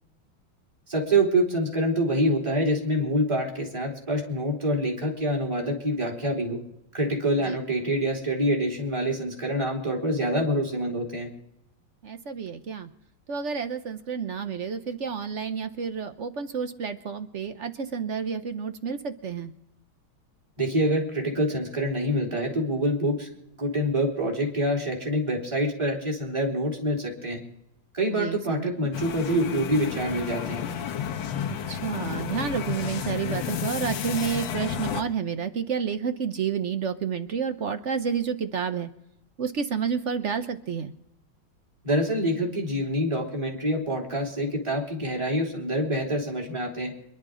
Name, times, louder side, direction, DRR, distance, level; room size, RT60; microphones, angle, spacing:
voice 1, 0.9-6.6 6.9-11.3 20.6-23.3 23.6-27.4 27.9-30.6 41.8-46.9, right 1 dB, 15° right, -2 dB, 3.3 m, -26 dB
voice 2, 12.0-12.9 13.3-19.5 28.1-28.6 31.7-38.9 39.4-40.9, right 6 dB, 55° right, 9 dB, 0.8 m, -30 dB
sound 1, 28.9-35.0, left 8 dB, 75° left, 1.6 m, -31 dB
27.0 x 11.0 x 3.8 m, 0.87 s
omnidirectional pair, 2.2 m